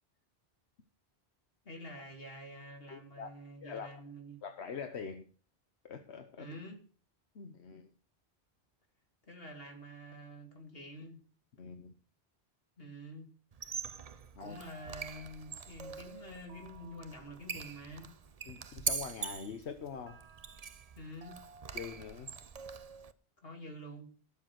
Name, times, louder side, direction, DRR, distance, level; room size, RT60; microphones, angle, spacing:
voice 1, 1.6-4.4 6.4-6.8 9.3-11.2 12.8-13.3 14.4-18.1 20.9-21.4 23.4-24.1, equal, 65° left, 3.1 m, -47 dB
voice 2, 2.9-3.3 3.6-3.9 4.4-5.3 5.8-6.5 7.3-7.9 11.6-11.9 14.3-14.6 18.5-20.2 21.7-22.3, left 6 dB, 85° left, 1.3 m, -44 dB
Squeak, 13.5-23.1, right 6 dB, 40° right, 0.7 m, -43 dB
17.0 x 7.2 x 6.4 m
omnidirectional pair, 1.1 m